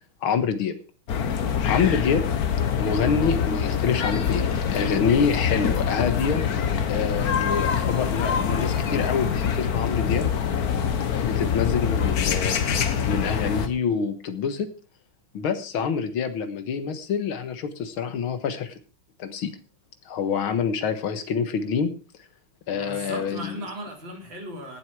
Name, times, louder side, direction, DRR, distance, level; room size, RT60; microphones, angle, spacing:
voice 1, 0.2-0.8 1.6-2.2 2.8-6.4 6.9-10.3 11.2-14.7 15.3-18.7 19.2-19.5 20.1-21.9 22.7-23.6, left 6 dB, 85° left, 10 dB, 2.2 m, -26 dB
sound 1, 1.1-13.7, left 7 dB, 50° left, 1.5 m, -25 dB
voice 2, 22.7-24.8, right 1 dB, 65° right, 1 dB, 4.4 m, -37 dB
17.5 x 7.9 x 4.8 m, 0.35 s
omnidirectional pair, 2.2 m